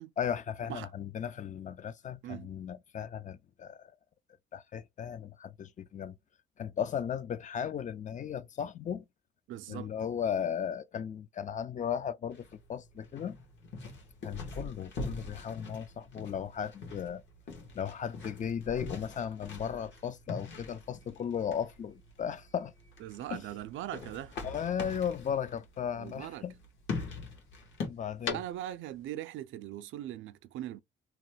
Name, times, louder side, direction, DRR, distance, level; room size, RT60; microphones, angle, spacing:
voice 1, 0.2-3.9 4.5-6.2 6.6-9.0 9.7-13.4 14.2-17.2 17.7-22.7 23.3-23.4 24.4-26.5 27.9-28.4, left 8 dB, 40° left, 0.4 m, -36 dB
voice 2, 9.5-9.9 23.0-24.4 26.0-26.5 28.3-30.8, right 13 dB, 75° right, 0.4 m, -40 dB
sound 1, 12.3-27.9, left 3 dB, 65° left, 1.3 m, -43 dB
sound 2, 20.6-29.1, left 5 dB, 85° left, 1.1 m, -48 dB
2.9 x 2.2 x 3.2 m
cardioid pair, 90°, 20 cm